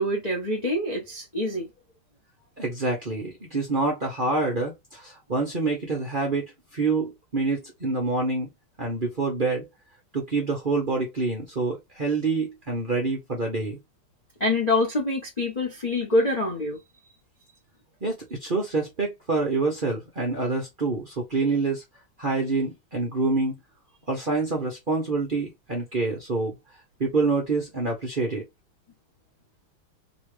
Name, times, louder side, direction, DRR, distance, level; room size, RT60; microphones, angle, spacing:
voice 1, 0.0-1.7 14.4-16.8, left 1 dB, 55° left, 0.4 m, -25 dB
voice 2, 2.6-8.5 8.8-9.7 10.1-13.8 18.0-21.8 22.2-23.6 24.1-26.6 27.0-28.5, right 3 dB, 55° right, 0.5 m, -26 dB
3.1 x 3.0 x 3.1 m
omnidirectional pair, 2.4 m